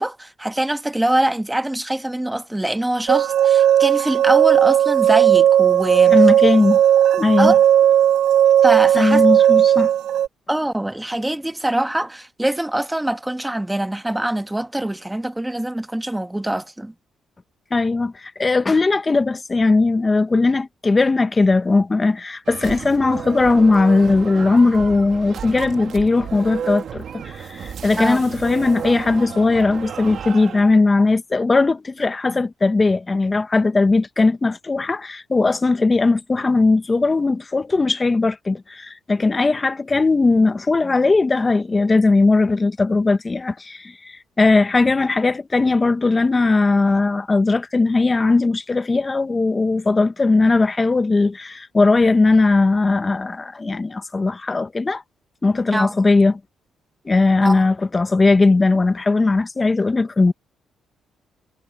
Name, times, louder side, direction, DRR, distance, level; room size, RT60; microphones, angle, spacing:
voice 1, 0.0-6.1 7.4-7.6 8.6-9.2 10.5-16.9 28.0-28.2 55.7-55.9 57.4-57.7, right 1 dB, 10° right, 1.3 m, -23 dB
sound 1, 3.1-10.3, right 10 dB, 80° right, 0.5 m, -15 dB
voice 2, 6.1-6.8 7.1-7.5 8.9-9.9 17.7-55.0 55.4-56.4 57.0-60.3, left 3 dB, 25° left, 1.0 m, -18 dB
sound 2, 22.5-30.8, right 8 dB, 60° right, 1.7 m, -32 dB
cardioid pair, 90°, 0 cm